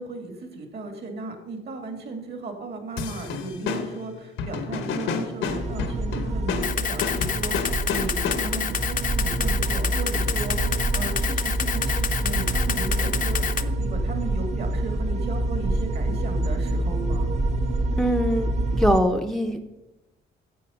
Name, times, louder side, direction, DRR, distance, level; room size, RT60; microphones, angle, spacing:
voice 1, 0.0-17.3, right 2 dB, 55° right, 5 dB, 2.5 m, -36 dB
sound 1, 3.0-8.7, left 5 dB, 85° left, 1.2 m, -31 dB
sound 2, 5.5-19.0, right 1 dB, 35° right, 0.9 m, -26 dB
Camera, 6.6-13.6, left 7 dB, 40° left, 0.6 m, -28 dB
voice 2, 18.0-19.7, equal, ahead, 5 dB, 0.7 m, -23 dB
9.2 x 7.5 x 5.7 m, 0.99 s
cardioid pair, 90°, 20 cm